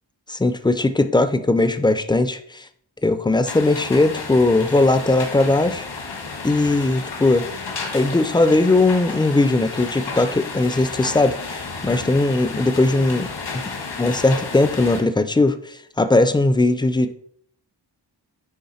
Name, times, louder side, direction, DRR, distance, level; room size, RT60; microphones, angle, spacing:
voice 1, 0.3-2.7 3.0-5.9 6.4-7.5 7.9-13.3 13.6-13.7 14.0-17.1, left 2 dB, 10° left, 11 dB, 0.3 m, -19 dB
sound 1, 3.4-15.0, left 4 dB, 80° left, 1.5 m, -32 dB
9.5 x 3.3 x 4.2 m, 0.64 s
wide cardioid pair, 160°, 42 cm